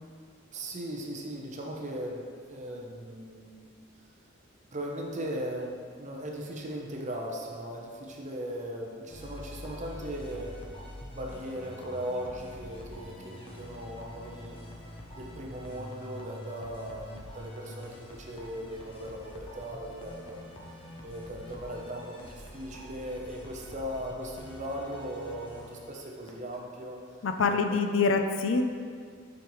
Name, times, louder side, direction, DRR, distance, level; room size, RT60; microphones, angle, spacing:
voice 1, 0.5-3.7 4.7-10.5 11.1-14.6 15.1-20.4 21.0-27.2 27.5-27.8, equal, 35° right, -1 dB, 0.7 m, -38 dB
sound 1, 9.1-26.6, equal, 25° left, 0.7 m, -46 dB
voice 2, 27.2-28.6, left 4 dB, 65° left, 6 dB, 0.5 m, -25 dB
7.6 x 5.2 x 3.1 m, 2.1 s
head